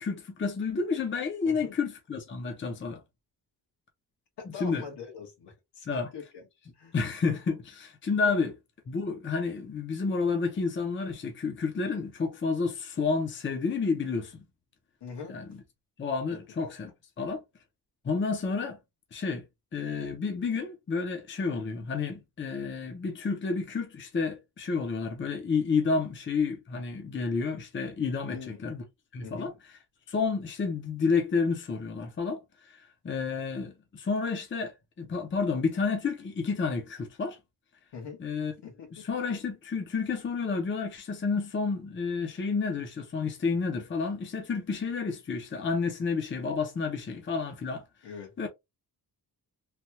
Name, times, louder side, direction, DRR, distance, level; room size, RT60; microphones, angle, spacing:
voice 1, 0.0-3.0 4.6-4.8 5.9-6.1 6.9-8.5 8.9-14.4 15.3-15.6 16.0-16.9 17.2-17.4 18.0-18.8 19.1-19.4 19.7-28.8 29.1-29.5 30.1-32.4 32.7-32.8 33.0-37.4 38.2-38.5 38.9-47.8 48.4-48.5, left 4 dB, 30° left, 0.7 m, -30 dB
voice 2, 1.4-1.8 4.4-6.4 6.8-6.9 15.0-15.3 28.3-28.6 29.2-29.5 37.9-38.2 38.6-38.9 48.0-48.3, left 6 dB, 75° left, 1.4 m, -42 dB
3.3 x 2.2 x 2.8 m
wide cardioid pair, 150°, 41 cm